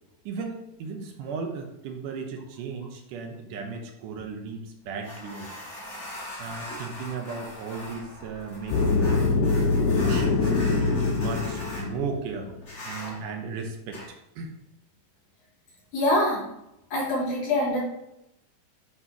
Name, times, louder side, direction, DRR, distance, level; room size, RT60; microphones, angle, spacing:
voice 1, 0.3-5.5 6.4-12.5 12.9-14.0 14.4-14.5, right 5 dB, 80° right, 3 dB, 2.4 m, -35 dB
sound 1, 5.0-11.9 12.6-13.2 13.9-14.1, left 1 dB, 40° left, 0.9 m, -40 dB
sound 2, 8.7-12.7, left 4 dB, 85° left, 2.2 m, -24 dB
voice 2, 15.9-16.4 16.9-17.8, left 1 dB, 70° left, -6 dB, 3.7 m, -24 dB
9.3 x 4.2 x 3.0 m, 0.85 s
omnidirectional pair, 3.7 m